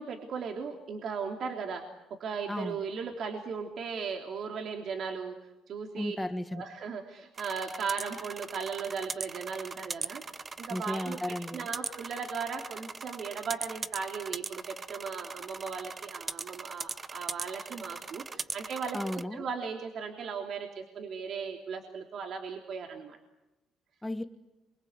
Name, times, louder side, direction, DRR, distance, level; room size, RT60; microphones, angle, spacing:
voice 1, 0.0-1.9 2.2-5.4 5.7-6.2 6.5-10.2 10.6-11.2 11.5-23.2, right 5 dB, 60° right, 3 dB, 3.2 m, -37 dB
voice 2, 5.9-6.6 10.7-11.7 18.9-19.5 24.0-24.2, left 1 dB, 10° left, 10 dB, 1.3 m, -34 dB
sound 1, 7.3-19.2, right 4 dB, 30° right, 0.9 m, -40 dB
28.0 x 24.5 x 8.2 m, 1.0 s
cardioid pair, 100°, 0 cm